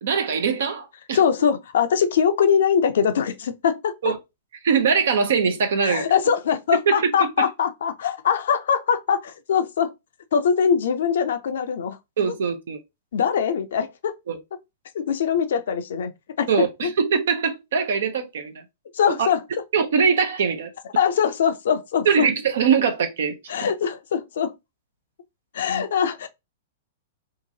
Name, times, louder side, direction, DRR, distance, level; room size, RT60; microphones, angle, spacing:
voice 1, 0.0-1.2 4.0-4.2 4.6-6.1 6.9-7.3 12.2-12.8 14.3-14.4 16.5-18.6 19.2-19.3 19.7-20.7 22.0-23.5, right 6 dB, 65° right, 0.7 m, -22 dB
voice 2, 1.1-3.9 5.8-9.9 10.3-12.0 13.1-14.1 14.9-16.1 16.4-16.9 18.9-19.4 21.0-22.3 23.5-24.5 25.5-26.3, left 7 dB, 65° left, 0.5 m, -22 dB
2.8 x 2.5 x 2.7 m
figure-of-eight pair, 105°, 0 cm